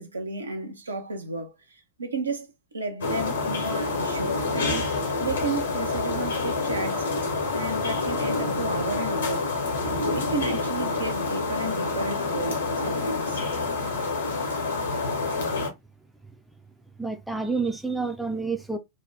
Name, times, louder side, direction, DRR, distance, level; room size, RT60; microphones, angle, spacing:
voice 1, 0.0-4.9 5.2-7.1 7.5-9.5 10.1-13.4, right 3 dB, 75° right, 0.6 m, -32 dB
sound 1, 3.0-15.7, left 3 dB, 65° left, 0.9 m, -27 dB
voice 2, 17.0-18.8, right 4 dB, ahead, 0.4 m, -28 dB
2.7 x 2.1 x 3.2 m
figure-of-eight pair, 90°, 0 cm